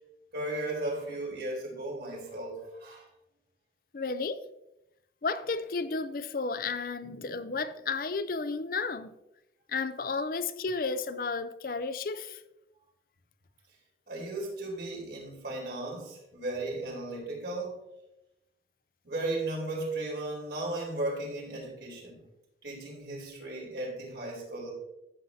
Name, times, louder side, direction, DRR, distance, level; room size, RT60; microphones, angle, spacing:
voice 1, 0.3-3.1 14.1-17.8 19.0-22.2 22.6-24.7, right 2 dB, 70° right, 3.9 m, -35 dB
voice 2, 3.9-4.4 5.2-9.2 9.7-12.4, left 4 dB, 55° left, 0.5 m, -32 dB
13.5 x 7.4 x 2.7 m
head